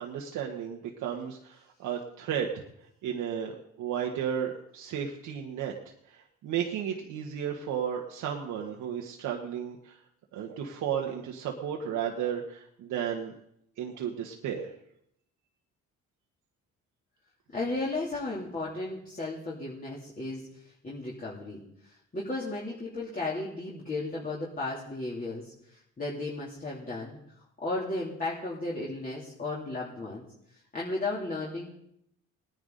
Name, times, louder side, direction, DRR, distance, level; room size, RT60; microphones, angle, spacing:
voice 1, 0.0-2.5 3.0-5.7 6.1-10.0 10.3-13.3 13.8-14.7, right 8 dB, 85° right, 1 dB, 1.4 m, -33 dB
voice 2, 17.5-27.2 27.6-30.2 30.7-31.7, left 2 dB, 30° left, -5 dB, 3.0 m, -35 dB
19.5 x 10.5 x 4.0 m, 0.75 s
cardioid pair, 90°, 30 cm